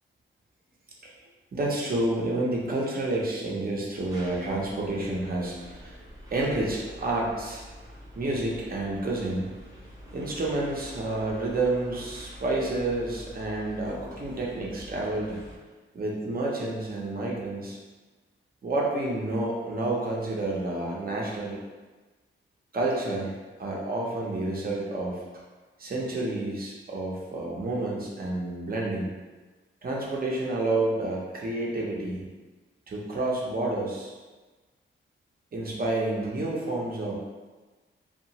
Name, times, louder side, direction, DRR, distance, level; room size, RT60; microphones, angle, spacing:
voice 1, 1.5-6.0 6.3-7.6 8.2-9.5 10.1-15.4 15.9-17.8 18.6-21.6 22.7-23.3 23.6-25.2 25.8-29.1 29.8-32.2 32.9-34.1 35.5-37.2, right 2 dB, 45° right, -3 dB, 0.6 m, -29 dB
sound 1, 4.0-15.6, equal, 15° right, 0.8 m, -46 dB
2.7 x 2.3 x 2.9 m, 1.3 s
wide cardioid pair, 115°, 21 cm